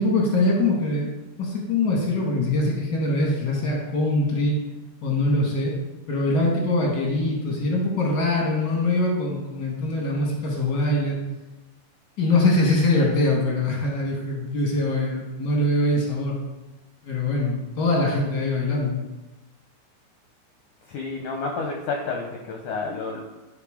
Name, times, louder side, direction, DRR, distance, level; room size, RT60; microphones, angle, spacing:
voice 1, 0.0-4.6 5.0-5.7 6.1-11.2 12.2-16.4 17.0-19.0, left 2 dB, 60° left, -2 dB, 1.1 m, -23 dB
voice 2, 20.8-23.2, left 4 dB, 75° left, 1 dB, 1.8 m, -30 dB
11.0 x 3.8 x 4.9 m, 1.1 s
omnidirectional pair, 4.4 m